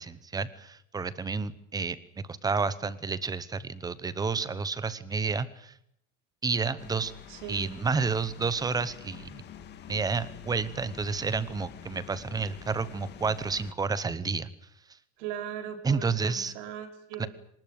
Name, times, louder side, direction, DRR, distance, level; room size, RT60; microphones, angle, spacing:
voice 1, 0.0-5.7 6.4-7.1 7.5-9.4 9.9-14.5 15.8-16.5 17.2-17.3, right 4 dB, 10° right, 16 dB, 0.9 m, -30 dB
sound 1, 6.8-13.7, left 8 dB, 25° left, 1.9 m, -47 dB
voice 2, 7.3-7.9 15.2-17.3, right 9 dB, 65° right, 4 dB, 5.3 m, -39 dB
24.5 x 20.0 x 9.4 m, 0.74 s
cardioid pair, 170°, 39 cm